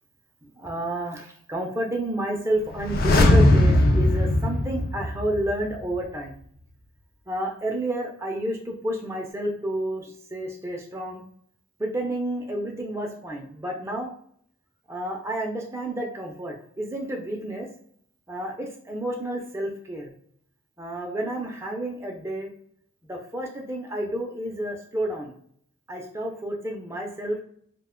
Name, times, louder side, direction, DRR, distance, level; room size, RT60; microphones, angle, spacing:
voice 1, 0.4-6.3 7.3-11.2 11.8-14.1 14.9-17.7 18.3-20.1 20.8-22.5 23.1-25.3 25.9-27.4, right 1 dB, 15° right, 0 dB, 0.4 m, -30 dB
sound 1, 2.7-5.7 5.9-6.0, left 1 dB, 45° left, 0.4 m, -19 dB
2.8 x 2.1 x 3.6 m, 0.64 s
head